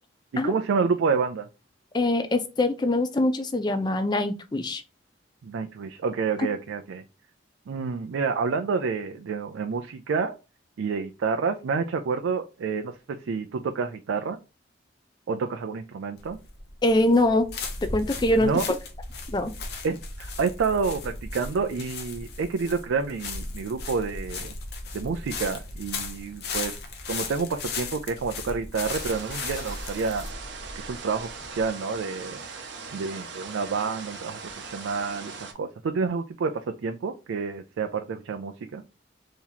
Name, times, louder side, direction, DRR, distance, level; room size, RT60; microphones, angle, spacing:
voice 1, 0.3-1.5 5.4-7.0 7.7-10.3 10.8-12.9 13.2-14.4 15.3-16.4 18.4-18.7 19.8-24.5 24.9-26.7 27.1-30.3 30.8-32.4 32.9-38.8, right 5 dB, 90° right, 6 dB, 0.4 m, -29 dB
voice 2, 1.9-4.8 6.4-6.5 16.8-17.5 17.8-18.5 19.3-19.5, left 1 dB, 20° left, 9 dB, 0.4 m, -23 dB
sound 1, 16.2-31.7, left 3 dB, 55° left, 0.7 m, -36 dB
sound 2, 28.8-35.5, right 4 dB, 70° right, 0.7 m, -40 dB
2.9 x 2.8 x 3.8 m, 0.30 s
head